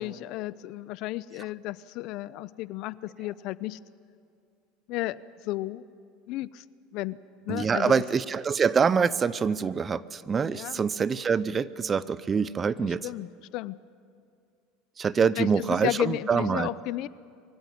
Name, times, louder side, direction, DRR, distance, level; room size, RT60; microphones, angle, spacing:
voice 1, 0.0-3.8 4.9-5.2 5.4-5.8 6.3-6.6 6.9-7.2 7.5-8.0 10.5-10.8 12.8-13.8 15.2-17.1, left 17 dB, 60° left, 18 dB, 0.6 m, -33 dB
voice 2, 7.5-13.0 15.0-16.7, right 6 dB, 25° right, 18 dB, 0.6 m, -25 dB
23.5 x 16.0 x 9.4 m, 2.4 s
supercardioid pair, 120°, 0 cm